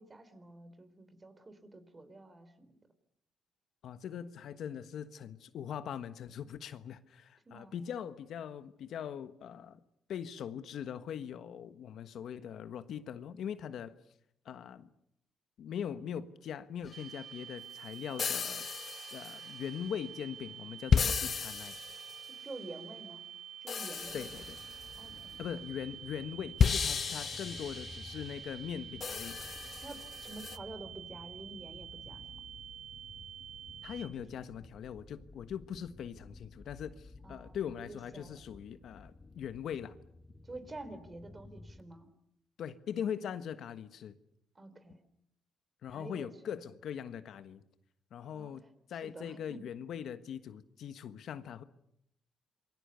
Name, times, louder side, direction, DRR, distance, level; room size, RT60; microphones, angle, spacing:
voice 1, 0.0-2.8 7.5-7.7 22.4-23.2 23.6-24.3 25.0-25.4 29.7-32.3 34.2-34.3 37.2-37.6 37.9-38.4 40.4-42.1 44.6-45.0 45.9-46.3 48.3-48.6 48.9-49.7, right 2 dB, 25° right, 4.0 m, -49 dB
voice 2, 3.8-9.8 10.1-14.0 14.4-14.9 15.6-18.7 19.1-21.8 24.1-24.6 25.4-29.4 33.8-39.9 42.6-44.1 45.8-47.6 48.1-48.6 48.9-51.6, left 8 dB, 70° left, 1.3 m, -41 dB
sound 1, 16.9-17.0 18.2-19.6 20.9-22.3 23.7-25.0 26.6-28.5 29.0-30.6, left 6 dB, 45° left, 1.0 m, -33 dB
sound 2, 16.9-34.1, right 10 dB, 90° right, 3.0 m, -48 dB
sound 3, 24.0-41.8, left 2 dB, 15° left, 2.3 m, -54 dB
28.0 x 22.5 x 6.9 m
cardioid pair, 90°, 0 cm